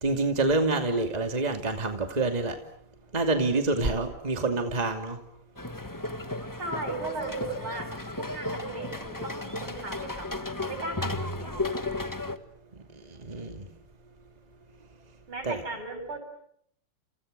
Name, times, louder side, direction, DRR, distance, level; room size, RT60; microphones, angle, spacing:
voice 1, 0.0-2.6 3.1-5.2 13.1-13.6 15.4-15.6, right 2 dB, 20° right, 2.5 m, -27 dB
sound 1, 5.6-12.4, left 2 dB, 10° left, 1.1 m, -34 dB
voice 2, 6.6-7.9 8.2-10.3 10.7-11.6 15.3-16.2, right 3 dB, 75° right, 8.7 m, -36 dB
29.5 x 28.5 x 6.7 m
omnidirectional pair, 2.4 m